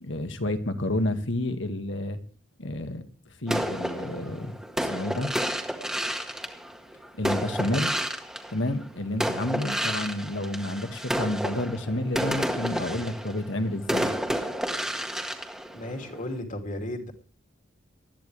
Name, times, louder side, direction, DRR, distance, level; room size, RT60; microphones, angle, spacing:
voice 1, 0.0-2.2 2.6-3.0 3.4-5.3 7.2-7.9 8.5-14.1, left 1 dB, 65° left, 8 dB, 2.0 m, -30 dB
sound 1, 3.5-8.9 9.2-16.4, equal, 5° right, 1.7 m, -30 dB
voice 2, 15.7-17.1, left 1 dB, 40° left, 5 dB, 2.8 m, -34 dB
20.0 x 13.5 x 3.4 m, 0.39 s
head